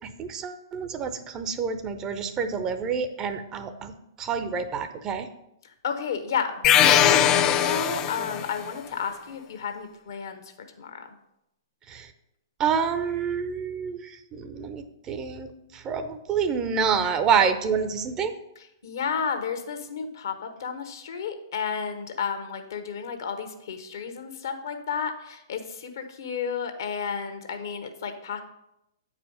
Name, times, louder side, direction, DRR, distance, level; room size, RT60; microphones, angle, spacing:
voice 1, 0.2-3.9 4.2-5.3 11.9-12.0 12.6-14.0 14.4-15.5 15.8-18.3, right 6 dB, 25° right, 9 dB, 0.6 m, -27 dB
voice 2, 5.8-10.4 10.8-11.1 18.8-28.4, left 6 dB, 65° left, 7 dB, 1.1 m, -32 dB
sound 1, 6.6-8.5, left 10 dB, 25° left, 0.5 m, -20 dB
8.8 x 4.9 x 5.1 m, 0.84 s
figure-of-eight pair, 115°, 2 cm